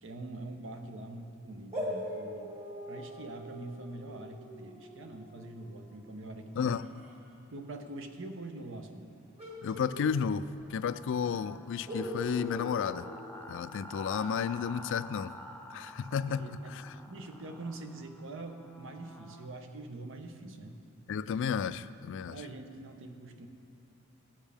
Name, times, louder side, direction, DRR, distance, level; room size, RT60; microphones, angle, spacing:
voice 1, 0.0-2.5 2.9-6.8 7.5-9.1 16.3-16.7 17.1-20.8 22.3-23.5, right 2 dB, 65° right, 6 dB, 0.9 m, -44 dB
sound 1, 1.7-7.2 9.4-10.9 11.1-11.2 11.9-14.1, equal, 30° right, 2.0 m, -42 dB
voice 2, 6.6-6.9 9.6-13.1 13.5-15.3 15.7-16.9 21.1-22.4, left 7 dB, 60° left, 15 dB, 0.3 m, -32 dB
sound 2, 10.6-19.5, equal, 5° left, 0.6 m, -49 dB
17.0 x 7.3 x 3.4 m, 2.5 s
head